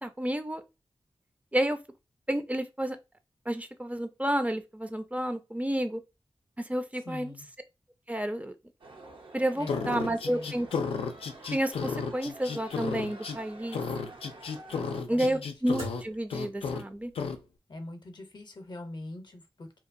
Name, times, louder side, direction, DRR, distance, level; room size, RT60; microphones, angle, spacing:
voice 1, 0.0-0.6 1.5-1.8 2.3-3.0 3.5-6.0 6.7-7.3 8.1-8.6 9.3-10.7 11.5-13.8 15.1-17.1, right 1 dB, 15° right, 0.4 m, -30 dB
voice 2, 7.0-7.5 9.5-10.8 14.8-15.5 17.7-19.8, left 2 dB, 50° left, 0.6 m, -43 dB
sound 1, 8.8-15.0, right 2 dB, 65° right, 0.6 m, -49 dB
sound 2, 9.7-13.4 13.7-16.0 16.3-16.8 17.2-17.4, left 5 dB, 85° left, 0.4 m, -33 dB
sound 3, 15.5-17.2, right 1 dB, 85° right, 1.1 m, -49 dB
2.8 x 2.2 x 2.5 m
cardioid pair, 45°, 9 cm